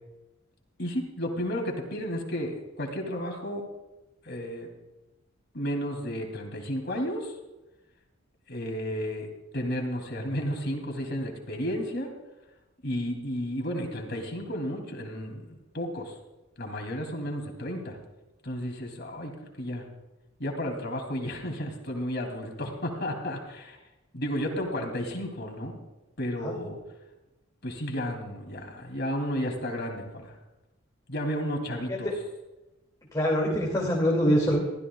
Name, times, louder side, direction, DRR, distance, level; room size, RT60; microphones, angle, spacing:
voice 1, 0.8-3.6 4.2-4.7 5.5-7.3 8.5-9.3 9.5-12.1 12.8-16.1 16.6-18.0 18.4-19.3 19.6-19.8 20.4-23.8 24.1-25.8 26.2-26.8 27.6-30.3 31.1-32.1, equal, 55° left, 2 dB, 3.1 m, -32 dB
voice 2, 33.1-34.6, equal, 20° left, -3 dB, 2.6 m, -24 dB
22.5 x 15.0 x 2.4 m, 1.0 s
head